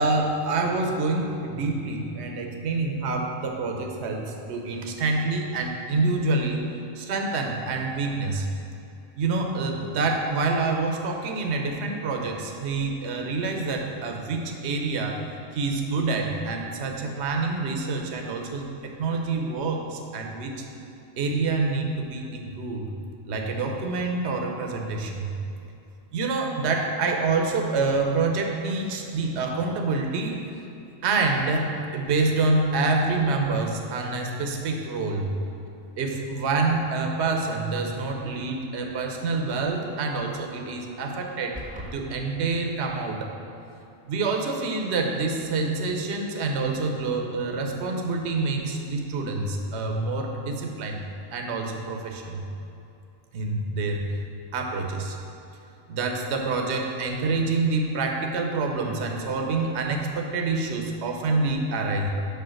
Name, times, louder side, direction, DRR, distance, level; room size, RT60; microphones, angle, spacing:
voice 1, 0.0-6.6 6.9-8.5 9.2-15.2 15.5-18.7 19.0-20.7 21.2-22.9 23.2-25.4 26.1-30.4 31.0-35.3 36.0-41.6 41.9-43.3 44.1-51.0 51.3-52.4 53.3-54.1 54.5-55.2 55.9-62.1, right 3 dB, 60° right, 2 dB, 1.0 m, -27 dB
sound 1, 41.5-41.9, equal, 5° right, 0.8 m, -37 dB
6.9 x 5.7 x 6.3 m, 2.8 s
omnidirectional pair, 1.4 m